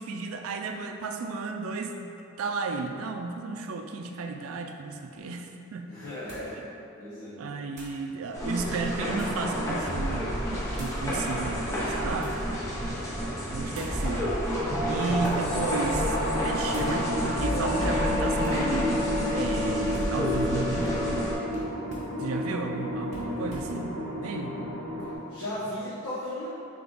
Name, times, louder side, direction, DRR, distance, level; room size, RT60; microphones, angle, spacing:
voice 1, 0.0-5.9 7.4-10.5 10.7-12.4 13.5-21.3 22.2-23.9 24.2-24.6, right 4 dB, 75° right, 5 dB, 0.4 m, -33 dB
sound 1, 5.1-5.2 6.3-6.6 7.7-8.0 8.7-9.5 10.7-11.0 11.8-12.5 13.7-14.0 15.1-15.6 16.0-16.3 16.7-17.0 18.4-18.7 19.9-20.6 21.5-22.2 23.1-23.8, right 1 dB, 35° right, 0.9 m, -47 dB
voice 2, 5.9-6.6 7.0-7.4 25.3-26.5, left 1 dB, 85° left, -12 dB, 1.0 m, -35 dB
sound 2, 8.3-21.3, equal, 15° left, 0.7 m, -29 dB
sound 3, 14.5-25.1, equal, 50° left, 0.7 m, -33 dB
3.5 x 3.4 x 3.9 m, 2.7 s
head